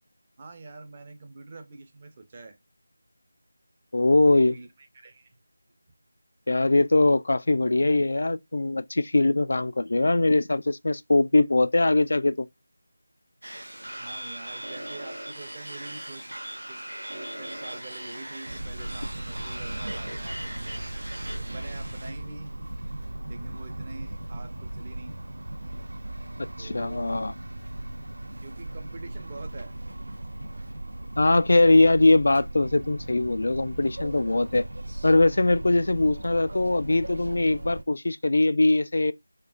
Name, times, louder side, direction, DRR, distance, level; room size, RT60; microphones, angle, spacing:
voice 1, 0.4-2.6 4.0-5.4 14.0-16.3 16.7-16.8 17.1-20.8 21.3-22.6 23.3-25.2 26.6-27.2 28.4-29.8, right 3 dB, 25° right, 0.7 m, -45 dB
voice 2, 3.9-4.6 6.5-12.5 26.6-27.3 31.2-34.6 35.0-39.1, left 2 dB, 60° left, 0.3 m, -21 dB
sound 1, 13.4-22.1, right 1 dB, 85° right, 1.1 m, -39 dB
sound 2, 18.5-37.8, right 1 dB, 70° right, 0.5 m, -37 dB
4.4 x 2.4 x 2.3 m
figure-of-eight pair, 170°, 0 cm